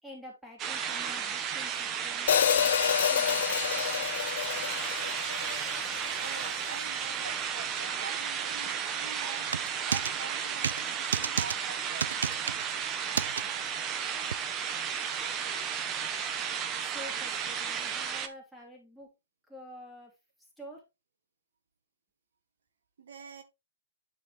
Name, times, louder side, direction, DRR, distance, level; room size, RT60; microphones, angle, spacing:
voice 1, 0.0-3.6 13.4-13.5 16.8-19.1 19.5-20.1 20.4-20.8, equal, ahead, 2.6 m, -49 dB
sound 1, 0.6-18.3, right 7 dB, 20° right, 0.8 m, -33 dB
Hi-hat, 2.3-6.5, left 9 dB, 65° left, 0.4 m, -28 dB
voice 2, 6.1-9.5 9.8-12.2 23.0-23.4, right 6 dB, 70° right, 1.1 m, -45 dB
sound 2, 9.5-10.1 10.6-10.8 11.1-11.6 12.0-12.6 13.2-13.4 14.3-14.4, right 7 dB, 85° right, 0.3 m, -30 dB
9.3 x 4.7 x 3.2 m
hypercardioid pair, 160°, 0 cm